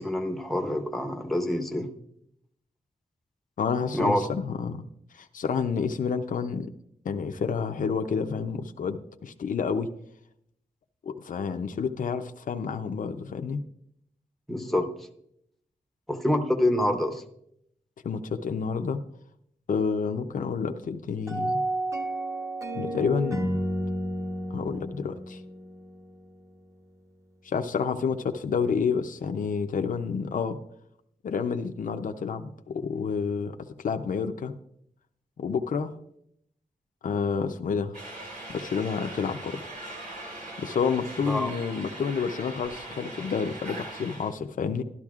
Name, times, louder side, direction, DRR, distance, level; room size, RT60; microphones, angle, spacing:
voice 1, 0.0-1.9 3.9-4.2 14.5-14.9 16.1-17.2 41.2-41.5, left 1 dB, ahead, 4 dB, 0.8 m, -26 dB
voice 2, 3.6-4.9 5.1-6.7 7.0-9.9 11.1-13.6 18.0-19.0 19.7-21.6 22.8-23.6 24.5-25.4 27.4-30.6 31.2-34.5 35.4-36.0 37.0-38.0 38.5-39.6 40.6-44.8, left 6 dB, 65° left, 6 dB, 0.5 m, -29 dB
sound 1, 21.3-26.4, right 1 dB, 20° right, 1.0 m, -31 dB
sound 2, 37.9-44.3, right 1 dB, 70° right, 3.2 m, -40 dB
12.0 x 12.0 x 2.4 m, 0.74 s
wide cardioid pair, 140°, 15 cm